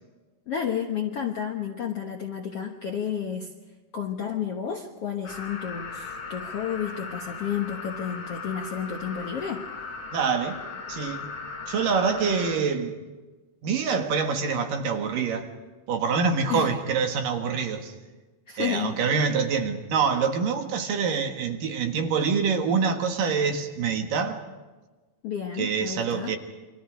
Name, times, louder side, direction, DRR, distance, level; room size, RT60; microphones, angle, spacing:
voice 1, 0.5-3.5 3.9-9.7 16.5-16.7 18.5-18.9 25.2-26.3, left 8 dB, 65° left, 3 dB, 1.5 m, -31 dB
sound 1, 5.2-12.6, left 5 dB, 40° left, 5.1 m, -38 dB
voice 2, 10.1-10.6 10.9-11.3 11.7-13.0 13.6-15.5 15.9-17.9 18.6-24.4 25.6-26.4, right 5 dB, 65° right, 5 dB, 3.1 m, -25 dB
29.5 x 24.5 x 5.0 m, 1.2 s
omnidirectional pair, 4.5 m